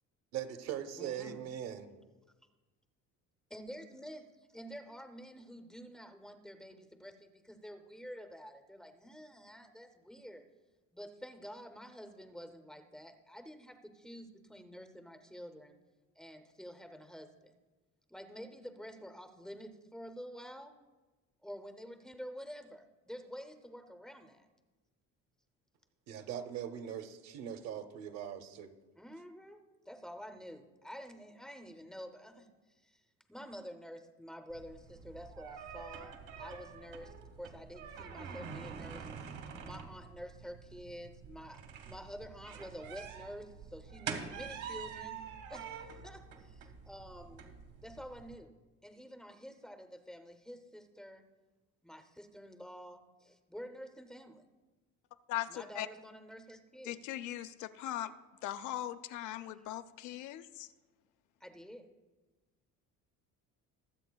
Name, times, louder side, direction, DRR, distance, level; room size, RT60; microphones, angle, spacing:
voice 1, 0.3-1.8 26.1-28.7, right 9 dB, 60° right, 8 dB, 0.8 m, -41 dB
voice 2, 1.0-1.4 3.5-4.2 4.5-10.4 10.9-15.8 16.2-17.5 18.1-20.7 21.4-24.5 29.0-29.6 29.9-32.5 32.8-33.0 33.3-39.1 39.6-45.2 45.5-47.5 47.8-48.5 48.8-51.2 51.8-54.5 55.5-57.0 61.4-61.9, equal, ahead, 8 dB, 0.5 m, -49 dB
sound 1, 34.5-48.3, right 6 dB, 80° right, 1.5 m, -46 dB
voice 3, 55.3-55.9 56.8-58.1 58.4-60.7, left 13 dB, 75° left, 12 dB, 0.6 m, -39 dB
23.0 x 7.8 x 2.2 m, 1.2 s
cardioid pair, 170°, 30 cm